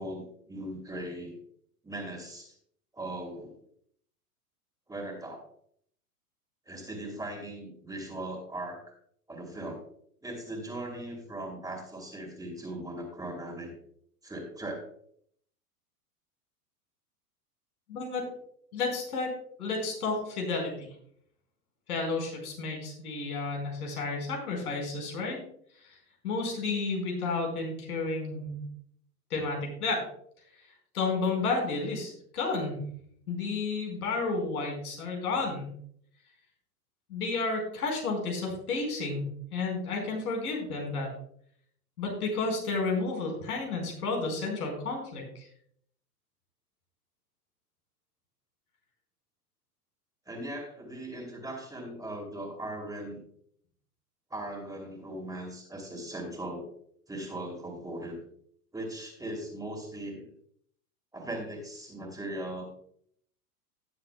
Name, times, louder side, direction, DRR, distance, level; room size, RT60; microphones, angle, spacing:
voice 1, 0.0-1.3 1.8-2.5 2.9-3.5 4.9-5.4 6.7-8.8 9.3-9.8 10.2-13.7 14.2-14.8 50.3-53.2 54.3-56.7 57.1-58.2 58.7-60.2 61.1-62.7, right 1 dB, 10° right, 1 dB, 2.7 m, -39 dB
voice 2, 17.9-18.3 18.7-19.3 19.6-20.9 21.9-25.4 25.8-26.0 26.2-28.6 29.3-30.0 30.9-32.8 33.3-35.7 37.1-41.1 42.0-45.5, left 3 dB, 70° left, 1 dB, 4.5 m, -31 dB
18.0 x 7.6 x 2.2 m, 0.64 s
hypercardioid pair, 100°, 46 cm